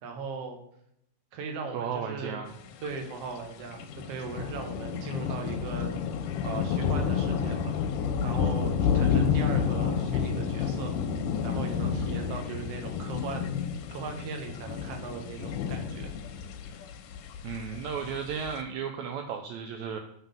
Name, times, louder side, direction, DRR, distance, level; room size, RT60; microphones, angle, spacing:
voice 1, 0.0-0.6 1.3-2.4 2.8-5.9 6.4-7.8 8.2-10.9 11.4-13.5 13.9-16.1, right 4 dB, 60° right, 3 dB, 1.8 m, -38 dB
voice 2, 1.7-2.5 17.4-20.0, right 7 dB, 80° right, 4 dB, 1.7 m, -34 dB
sound 1, 2.5-3.1 3.4-3.5 3.7-18.5, left 7 dB, 90° left, 2.3 m, -30 dB
8.0 x 4.3 x 5.2 m, 0.75 s
omnidirectional pair, 3.8 m